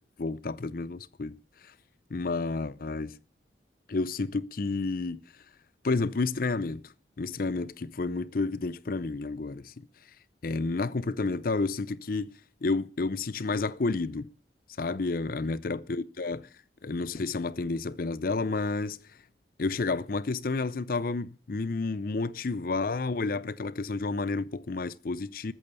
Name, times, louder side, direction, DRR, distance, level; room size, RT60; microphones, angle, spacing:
voice 1, 0.2-1.3 2.1-3.1 3.9-5.2 5.8-6.8 7.2-9.7 10.4-12.3 12.6-14.3 14.8-16.5 16.8-19.0 19.6-25.5, left 3 dB, 50° left, 0.5 m, -30 dB
13.5 x 8.6 x 6.8 m
head